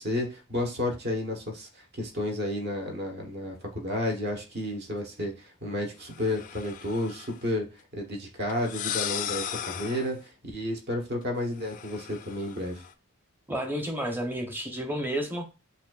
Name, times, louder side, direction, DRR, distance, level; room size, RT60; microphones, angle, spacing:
voice 1, 0.0-7.7 7.9-12.8, left 1 dB, 50° right, 2 dB, 1.1 m, -32 dB
sound 1, 6.1-7.4 8.5-10.2 11.6-12.9, left 10 dB, 40° left, 0.3 m, -36 dB
voice 2, 13.5-15.4, equal, 10° right, 3 dB, 0.8 m, -31 dB
7.1 x 2.6 x 2.4 m, 0.31 s
head